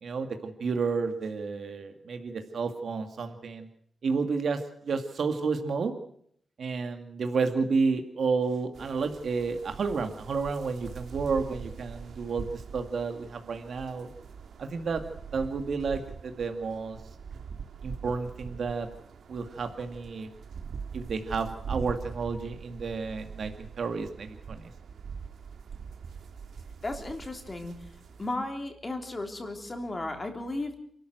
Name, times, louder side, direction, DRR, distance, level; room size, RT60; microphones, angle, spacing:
voice 1, 0.0-3.7 4.0-5.9 6.6-14.1 14.6-15.0 15.3-17.0 17.8-18.9 19.3-20.3 20.9-24.7, right 4 dB, 65° right, 6 dB, 2.2 m, -31 dB
sound 1, 8.7-28.4, right 6 dB, 85° right, 1.8 m, -43 dB
voice 2, 26.8-27.8 28.2-30.8, left 2 dB, 25° left, 4 dB, 3.4 m, -35 dB
28.0 x 13.0 x 7.9 m, 0.65 s
wide cardioid pair, 140°, 0 cm